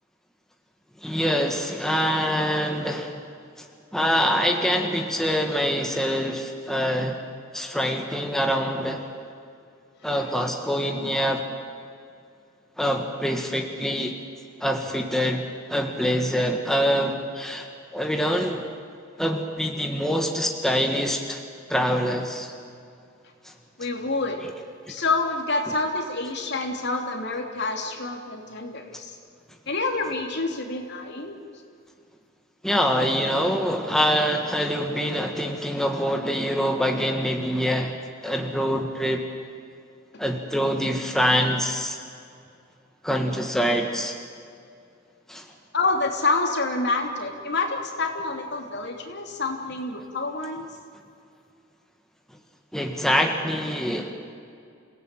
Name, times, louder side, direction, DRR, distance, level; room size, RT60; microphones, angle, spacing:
voice 1, 1.0-3.1 3.6-3.7 3.9-7.2 7.5-9.1 10.0-11.5 12.8-14.2 14.6-15.4 15.7-18.7 19.2-21.4 21.7-22.5 23.4-23.5 24.9-25.0 32.6-37.9 38.2-39.2 40.2-42.0 43.0-44.2 45.3-45.5 52.7-54.1, equal, ahead, 3 dB, 1.7 m, -25 dB
voice 2, 23.8-24.4 24.9-29.1 29.7-31.4 45.7-50.7, left 3 dB, 60° left, 3 dB, 3.1 m, -27 dB
28.0 x 17.0 x 9.1 m, 2.4 s
head